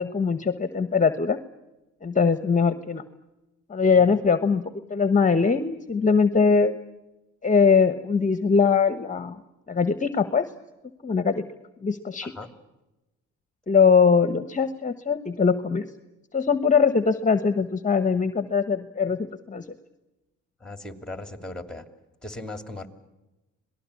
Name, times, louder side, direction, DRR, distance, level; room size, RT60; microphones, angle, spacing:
voice 1, 0.0-1.4 2.0-3.0 3.7-4.6 4.9-6.8 7.4-9.4 9.7-10.4 11.0-11.4 11.8-12.3 13.7-15.9 16.3-19.6, left 5 dB, 25° left, 12 dB, 1.2 m, -21 dB
voice 2, 20.6-21.8 22.2-22.9, left 2 dB, ahead, 8 dB, 2.9 m, -38 dB
26.0 x 19.0 x 8.4 m, 1.0 s
cardioid pair, 90°, 30 cm